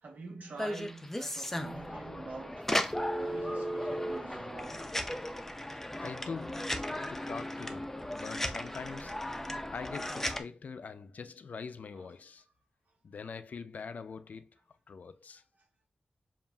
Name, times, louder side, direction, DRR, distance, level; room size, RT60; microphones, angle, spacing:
voice 1, 0.0-2.7 3.1-4.9 5.7-5.8 8.6-8.7 11.9-12.1, right 3 dB, 75° right, 1.0 m, -46 dB
sound 1, 0.6-10.4, left 1 dB, 10° left, 0.5 m, -36 dB
voice 2, 6.0-9.4 9.7-12.4 13.0-14.5 14.9-15.4, left 5 dB, 65° left, 0.4 m, -44 dB
7.1 x 2.4 x 2.3 m
wide cardioid pair, 105°, 3 cm